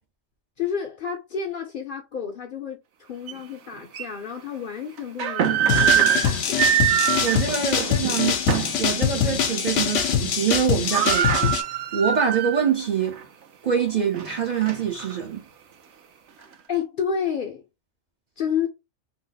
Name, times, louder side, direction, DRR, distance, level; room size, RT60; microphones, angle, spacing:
voice 1, 0.6-6.6 10.9-11.2 16.7-17.6 18.4-18.7, left 7 dB, 55° left, 0.6 m, -30 dB
sound 1, 3.3-3.4 3.9-4.1 5.0-8.8 9.2-9.4 9.8-10.2 10.4-10.5 10.7-12.7 13.1-13.2 13.8-15.1, right 10 dB, 70° right, 0.9 m, -23 dB
sound 2, 5.7-11.6, left 8 dB, 80° left, 0.9 m, -24 dB
voice 2, 7.2-8.4 8.8-11.6 11.9-13.2 13.6-15.4, right 7 dB, 50° right, 0.6 m, -25 dB
2.7 x 2.0 x 3.8 m
omnidirectional pair, 1.3 m